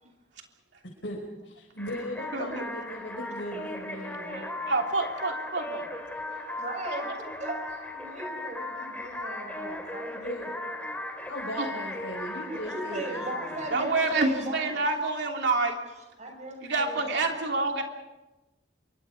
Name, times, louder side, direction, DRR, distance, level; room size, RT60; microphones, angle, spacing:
voice 1, 1.4-4.5 6.3-6.4 10.1-10.5 11.2-13.6, equal, 75° left, -2 dB, 5.3 m, -38 dB
sound 1, 1.8-15.2, left 1 dB, 10° left, 2.9 m, -37 dB
voice 2, 4.3-5.9 11.6-11.7 13.7-15.8 16.6-17.8, right 3 dB, 70° right, 2 dB, 3.2 m, -27 dB
voice 3, 6.6-7.1 7.4-10.3 10.8-11.0 12.6-14.8 16.2-17.2, right 1 dB, 40° right, 3 dB, 6.1 m, -38 dB
27.5 x 24.0 x 5.0 m, 1.0 s
head